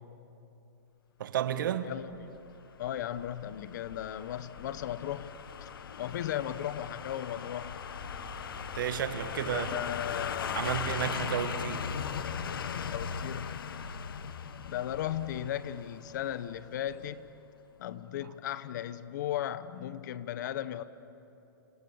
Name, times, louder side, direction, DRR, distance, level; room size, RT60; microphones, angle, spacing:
voice 1, 1.2-2.0 8.7-9.8 10.5-11.9, right 9 dB, 65° right, 1.5 m, -32 dB
voice 2, 1.9-2.4 2.8-5.7 6.0-7.8 9.5-10.7 12.9-13.6 14.6-17.3 17.8-20.8, left 11 dB, 55° left, 1.1 m, -36 dB
sound 1, 2.1-17.0 17.3-17.4, left 7 dB, 90° left, 1.6 m, -39 dB
sound 2, 8.0-12.2 13.2-13.3, right 1 dB, 10° right, 3.4 m, -52 dB
29.0 x 27.0 x 7.2 m
hypercardioid pair, 155°, 11 cm